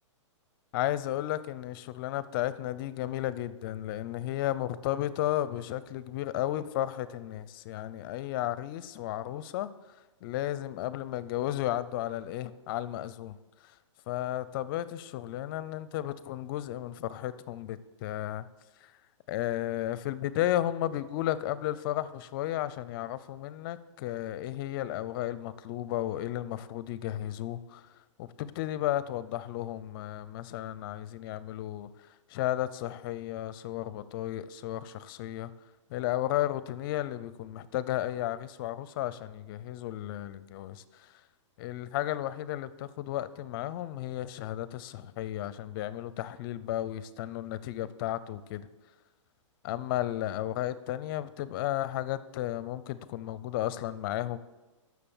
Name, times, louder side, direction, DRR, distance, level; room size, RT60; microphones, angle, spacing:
voice 1, 0.7-9.7 10.2-13.4 14.1-18.5 18.8-18.9 19.3-27.8 28.2-31.9 32.3-35.5 35.9-41.1 41.6-48.7 49.6-54.4, left 13 dB, 45° left, 16 dB, 0.6 m, -33 dB
9.9 x 6.2 x 7.2 m, 1.1 s
hypercardioid pair, 140°, 16 cm